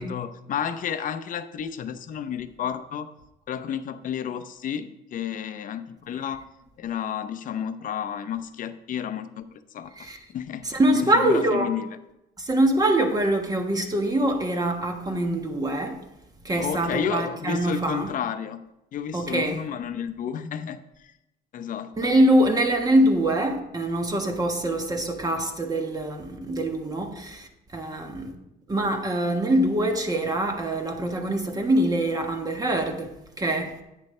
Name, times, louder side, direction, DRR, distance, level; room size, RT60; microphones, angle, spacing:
voice 1, 0.0-3.1 3.5-6.4 6.8-9.9 10.3-11.9 16.5-18.6 18.9-21.1 21.5-22.1, left 8 dB, 50° left, 0.7 m, -31 dB
voice 2, 10.6-11.7 12.4-16.0 16.4-18.1 19.1-19.6 22.0-28.4 28.7-33.7, right 1 dB, 20° right, 1.3 m, -24 dB
10.5 x 8.4 x 3.2 m
cardioid pair, 110°, 17 cm